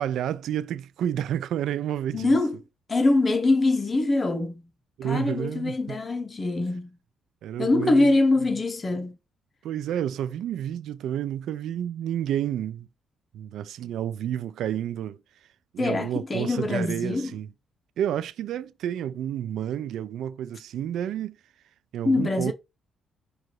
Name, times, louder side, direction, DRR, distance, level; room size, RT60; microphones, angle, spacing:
voice 1, 0.0-2.4 5.0-6.0 7.4-8.1 9.6-12.9 13.3-15.2 15.7-17.5 18.0-21.4 21.9-22.5, right 10 dB, 75° right, 0.4 m, -30 dB
voice 2, 2.1-2.6 2.9-4.7 5.0-6.9 7.6-9.2 15.8-17.3 22.0-22.5, left 2 dB, 30° left, 0.9 m, -23 dB
4.7 x 2.5 x 4.5 m
cardioid pair, 90°, 0 cm